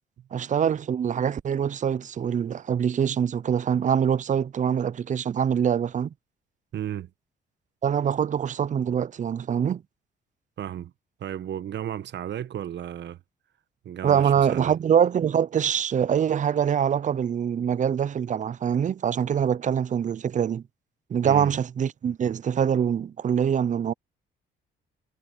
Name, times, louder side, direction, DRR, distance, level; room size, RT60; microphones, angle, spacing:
voice 1, 0.3-6.1 7.8-9.8 14.0-20.6 21.1-23.9, right 8 dB, 40° right, 0.5 m, -24 dB
voice 2, 6.7-7.1 10.6-10.9 11.2-13.2 13.8-14.7 21.2-21.6, right 10 dB, 65° right, 1.2 m, -34 dB
cardioid pair, 90°, 20 cm